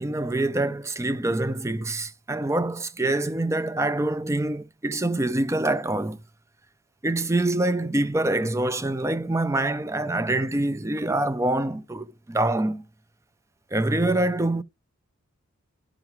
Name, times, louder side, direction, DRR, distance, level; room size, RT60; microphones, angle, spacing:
voice 1, 0.0-6.2 7.0-12.8 13.7-14.6, right 2 dB, 15° right, 0.4 m, -25 dB
12.0 x 5.9 x 3.0 m
head